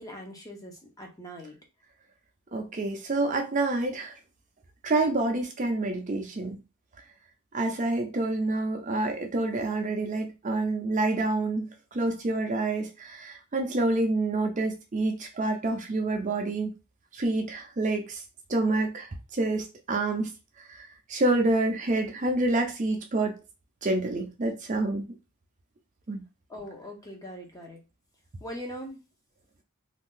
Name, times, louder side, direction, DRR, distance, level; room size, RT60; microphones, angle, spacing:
voice 1, 0.0-1.6 26.5-27.8 28.4-29.0, equal, 15° left, 1 dB, 0.6 m, -41 dB
voice 2, 2.5-4.2 4.8-6.6 7.5-16.7 17.1-18.2 18.5-20.3 20.6-23.4 23.8-25.0 26.1-26.2, right 2 dB, 35° right, 4 dB, 0.5 m, -28 dB
2.5 x 2.3 x 3.7 m, 0.29 s
head